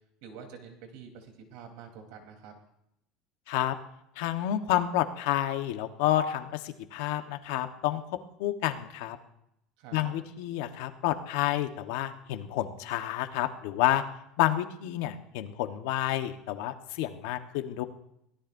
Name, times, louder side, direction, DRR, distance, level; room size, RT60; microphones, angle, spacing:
voice 1, 0.2-2.5 9.8-10.1, right 6 dB, 70° right, 3 dB, 3.7 m, -47 dB
voice 2, 4.2-8.0 8.4-9.2 9.9-14.0 14.4-17.8, left 13 dB, 80° left, 7 dB, 1.3 m, -29 dB
23.0 x 17.0 x 2.7 m, 0.79 s
supercardioid pair, 135°, 0 cm